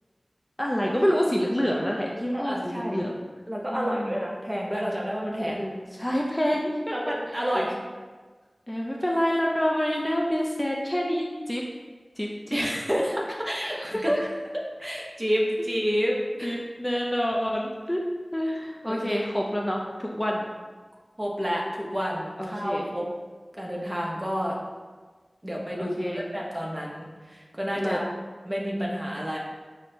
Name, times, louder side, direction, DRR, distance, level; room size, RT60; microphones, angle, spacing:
voice 1, 0.6-3.1 3.7-4.2 5.4-6.9 7.4-7.7 8.7-11.6 12.2-12.7 13.8-14.2 16.4-18.0 18.3-20.5 22.4-22.9 25.8-26.2 27.7-28.0, equal, 20° left, -1 dB, 0.4 m, -27 dB
voice 2, 2.3-3.0 3.5-5.6 6.9-7.8 12.5-14.3 14.8-16.6 18.9-19.1 21.2-23.1 23.6-24.5 25.4-28.1 28.5-29.4, equal, 25° right, -3 dB, 0.7 m, -29 dB
5.9 x 2.1 x 2.7 m, 1.4 s
wide cardioid pair, 45°, 0 cm